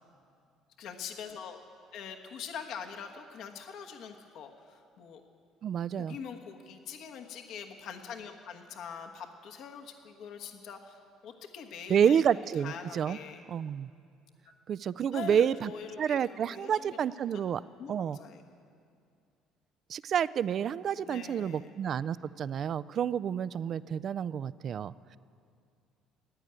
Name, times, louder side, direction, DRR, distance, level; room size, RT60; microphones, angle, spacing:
voice 1, 0.8-1.6 1.9-5.2 6.0-12.2 12.6-13.4 15.1-16.9 17.8-18.4 21.1-21.7, left 7 dB, 65° left, 3 dB, 1.3 m, -43 dB
voice 2, 5.6-6.2 11.9-13.2 13.5-13.9 14.7-15.7 16.0-17.6 17.9-18.2 19.9-25.2, right 8 dB, 50° right, 18 dB, 0.3 m, -29 dB
16.0 x 9.4 x 8.9 m, 2.3 s
supercardioid pair, 90°, 0 cm